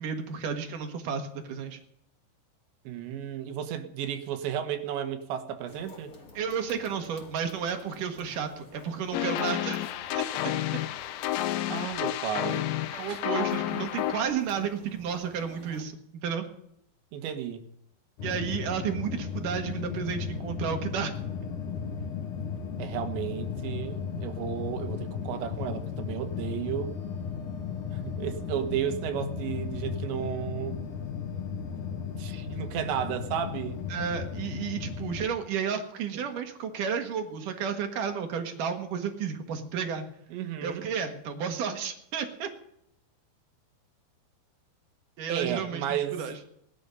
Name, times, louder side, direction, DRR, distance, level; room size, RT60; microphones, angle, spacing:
voice 1, 0.0-1.8 6.3-9.8 10.2-10.3 12.9-15.9 16.2-16.5 18.2-21.1 33.9-40.0 40.6-42.5 45.2-46.4, right 7 dB, 60° right, 5 dB, 2.8 m, -32 dB
voice 2, 2.9-6.1 11.7-12.7 13.1-13.2 13.5-13.6 17.1-17.7 22.8-26.9 27.9-30.8 32.2-33.8 40.3-40.9 45.3-46.2, right 9 dB, 90° right, 7 dB, 3.6 m, -33 dB
sound 1, 5.7-15.8, left 3 dB, 35° left, 3.2 m, -52 dB
sound 2, 9.1-14.2, left 12 dB, 80° left, 2.1 m, -30 dB
sound 3, 18.2-35.3, left 6 dB, 55° left, 2.8 m, -35 dB
19.5 x 12.5 x 5.5 m, 0.74 s
omnidirectional pair, 5.0 m